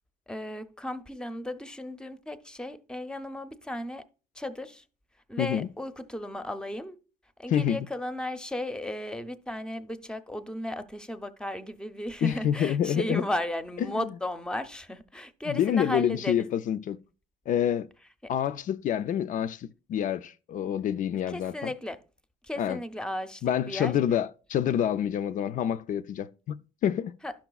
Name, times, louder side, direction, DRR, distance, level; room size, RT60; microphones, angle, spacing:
voice 1, 0.3-4.0 4.3-4.8 5.3-7.0 7.4-16.4 18.2-18.3 21.3-22.0 22.4-23.9 27.2-27.3, left 1 dB, 5° left, 0.6 m, -35 dB
voice 2, 5.4-5.7 7.5-7.8 12.2-13.2 13.9-14.1 15.5-17.0 17.5-17.9 18.3-21.7 22.6-22.8 23.4-27.1, left 9 dB, 50° left, 0.4 m, -27 dB
11.5 x 5.9 x 2.3 m
cardioid pair, 110°, 17 cm